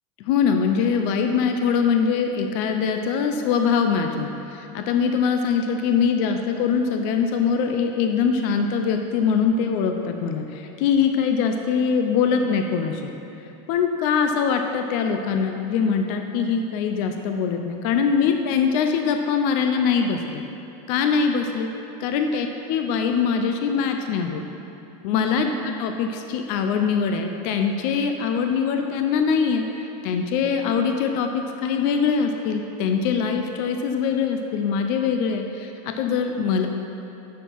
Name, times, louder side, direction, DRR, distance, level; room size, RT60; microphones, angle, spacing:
voice 1, 0.2-13.1 13.7-20.4 20.9-21.7 22.0-24.4 25.0-36.7, left 6 dB, 55° left, 5 dB, 0.6 m, -23 dB
7.2 x 6.5 x 5.5 m, 3.0 s
supercardioid pair, 155°, 17 cm